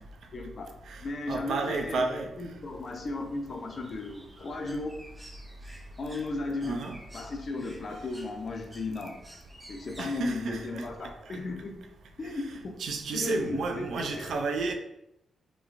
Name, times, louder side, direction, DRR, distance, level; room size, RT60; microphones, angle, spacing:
voice 1, 0.3-0.7 1.0-2.0 2.4-5.0 6.0-6.8 7.1-9.2 9.7-11.7 12.2-12.7 13.1-14.3, left 3 dB, 50° left, 3 dB, 0.4 m, -35 dB
voice 2, 1.3-2.3 6.6-7.0 10.0-10.9 12.3-12.4 12.8-14.7, right 3 dB, 80° right, 4 dB, 0.3 m, -31 dB
Bird, 2.6-10.7, right 1 dB, 15° right, 0.5 m, -53 dB
3.0 x 2.4 x 2.4 m, 0.86 s
cardioid pair, 110°, 0 cm